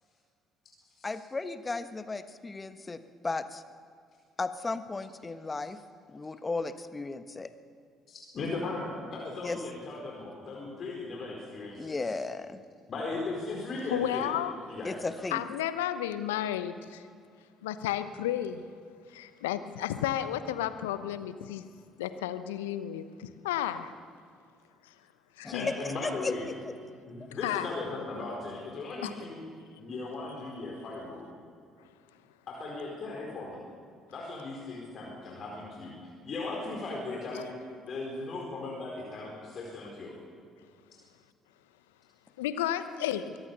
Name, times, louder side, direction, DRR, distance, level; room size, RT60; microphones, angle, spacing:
voice 1, 1.0-3.6 4.4-5.8 6.1-7.5 9.4-9.6 11.8-12.6 14.8-15.5 25.4-26.7, left 3 dB, 25° left, 11 dB, 1.3 m, -35 dB
voice 2, 8.1-12.1 12.9-14.3 14.7-15.0 25.5-26.5 27.0-29.4 29.8-31.3 32.5-33.6 34.1-35.9 36.2-37.5 37.8-40.1, left 3 dB, 50° left, -2 dB, 4.6 m, -37 dB
voice 3, 13.9-14.5 15.3-17.0 17.6-18.6 19.1-21.6 22.0-23.9 25.4-25.7 27.4-27.7 29.0-29.1 37.3-37.4 42.4-43.4, left 11 dB, 75° left, 12 dB, 0.9 m, -32 dB
23.5 x 17.0 x 7.0 m, 2.2 s
figure-of-eight pair, 50°, 0 cm